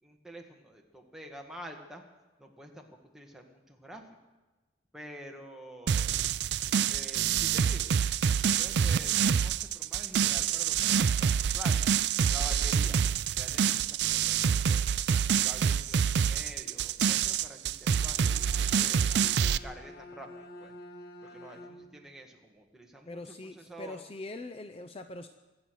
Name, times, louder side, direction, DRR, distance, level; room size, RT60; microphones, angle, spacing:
voice 1, 0.0-2.0 2.4-4.0 4.9-6.3 6.9-8.0 8.4-11.8 12.3-13.0 13.4-14.8 15.2-20.7 21.2-24.0, equal, 5° right, 1 dB, 1.7 m, -48 dB
sound 1, 5.9-19.6, right 7 dB, 65° right, 0.4 m, -27 dB
Bowed string instrument, 17.8-22.1, left 1 dB, 60° left, 1.8 m, -49 dB
voice 2, 23.1-25.3, left 2 dB, 30° left, 9 dB, 0.6 m, -42 dB
24.0 x 8.6 x 6.4 m, 1.2 s
head